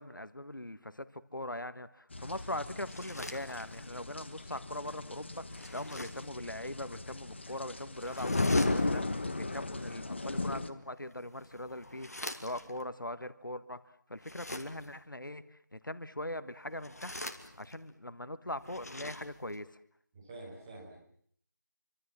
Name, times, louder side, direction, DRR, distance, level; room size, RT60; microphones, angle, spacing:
voice 1, 0.0-13.8 14.1-17.2 17.6-19.7, left 1 dB, 80° left, 12 dB, 1.6 m, -41 dB
sound 1, 2.1-10.7, left 2 dB, 35° left, 1.5 m, -35 dB
sound 2, 2.7-4.0 5.5-6.3 8.0-9.2 11.0-12.8 14.2-15.0 16.6-17.9 18.5-19.6, left 1 dB, 50° left, 2.7 m, -45 dB
voice 2, 20.1-21.0, right 2 dB, 10° right, -4 dB, 5.2 m, -47 dB
27.0 x 25.0 x 7.5 m, 0.64 s
figure-of-eight pair, 170°, 11 cm